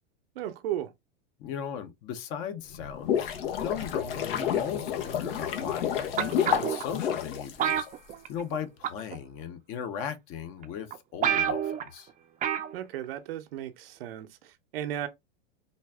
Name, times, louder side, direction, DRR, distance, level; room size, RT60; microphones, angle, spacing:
voice 1, 0.4-0.9 12.7-15.1, right 11 dB, 75° right, 0.8 m, -35 dB
voice 2, 1.4-7.9 8.3-12.1, left 8 dB, 45° left, 1.0 m, -37 dB
sound 1, 2.7-8.1, left 9 dB, 75° left, 1.3 m, -30 dB
sound 2, 6.2-6.8 7.6-8.6 8.8-9.1 10.0-10.1 10.6-10.7 10.9-11.0 11.2-11.9 12.4-12.7 13.0-13.1, right 9 dB, 25° right, 0.6 m, -28 dB
4.1 x 2.6 x 3.5 m
hypercardioid pair, 120°, 30 cm